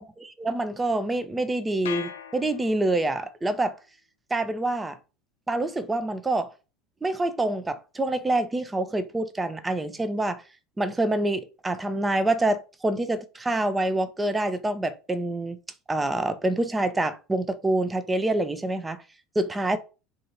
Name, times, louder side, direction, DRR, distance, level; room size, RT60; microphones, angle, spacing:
voice 1, 0.2-3.7 4.3-5.0 5.5-6.5 7.0-10.4 10.8-15.6 15.9-19.0 19.4-19.8, right 2 dB, 15° right, 0.5 m, -26 dB
sound 1, 1.9-3.2, left 9 dB, 70° left, 0.5 m, -39 dB
3.7 x 2.6 x 4.2 m
figure-of-eight pair, 70°, 0 cm